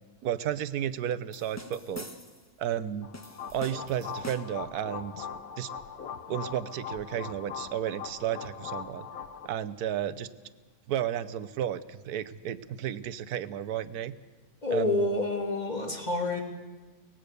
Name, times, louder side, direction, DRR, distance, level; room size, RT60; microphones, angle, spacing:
voice 1, 0.2-2.1 2.6-3.1 3.5-5.3 5.6-5.7 6.3-9.1 9.4-10.3 10.9-14.1 14.7-15.0, right 10 dB, 85° right, 15 dB, 1.3 m, -33 dB
sound 1, 1.3-2.5 3.1-4.7, left 1 dB, 10° left, 1.1 m, -45 dB
sound 2, 3.0-9.5, left 7 dB, 70° left, 1.6 m, -40 dB
voice 2, 14.6-16.4, left 2 dB, 30° left, 3 dB, 2.8 m, -28 dB
24.0 x 19.0 x 6.8 m, 1.4 s
omnidirectional pair, 1.6 m